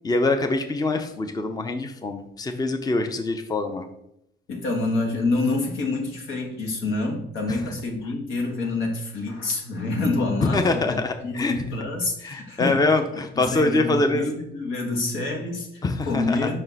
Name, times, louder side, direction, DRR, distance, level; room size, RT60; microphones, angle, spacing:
voice 1, 0.0-3.9 7.5-7.6 10.4-11.6 12.2-14.3 15.8-16.5, left 2 dB, 20° left, 6 dB, 0.6 m, -24 dB
voice 2, 4.5-12.8 13.3-16.6, left 2 dB, 85° left, 1 dB, 1.4 m, -27 dB
5.4 x 4.4 x 4.0 m, 0.79 s
cardioid pair, 90°, 20 cm